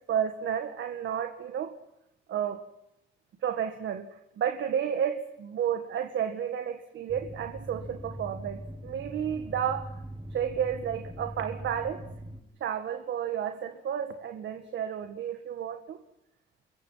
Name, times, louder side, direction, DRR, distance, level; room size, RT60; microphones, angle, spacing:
voice 1, 0.0-1.8 2.3-2.6 3.4-10.0 10.3-12.1 12.6-16.0, right 8 dB, 70° right, 7 dB, 1.9 m, -32 dB
sound 1, 7.1-12.4, right 1 dB, 20° right, 7.2 m, -41 dB
28.0 x 23.0 x 5.8 m, 0.87 s
cardioid pair, 90°, 20 cm